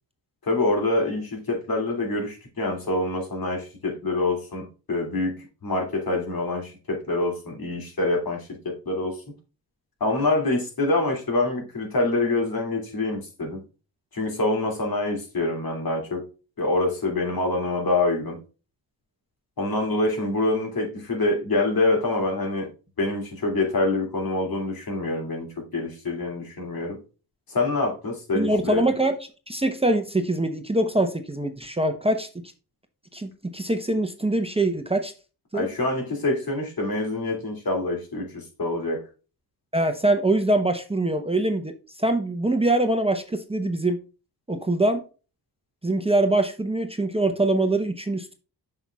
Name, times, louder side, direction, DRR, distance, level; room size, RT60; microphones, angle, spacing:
voice 1, 0.4-9.2 10.0-13.6 14.1-16.3 16.6-18.4 19.6-22.7 23.0-27.0 27.5-28.8 35.5-39.0, left 2 dB, 60° left, 2.6 m, -26 dB
voice 2, 28.3-29.1 29.5-32.3 33.1-35.1 35.5-35.6 39.7-41.7 42.0-44.0 44.5-45.0 45.8-48.3, right 2 dB, 15° right, 0.8 m, -23 dB
7.1 x 5.9 x 2.3 m
cardioid pair, 65°, 41 cm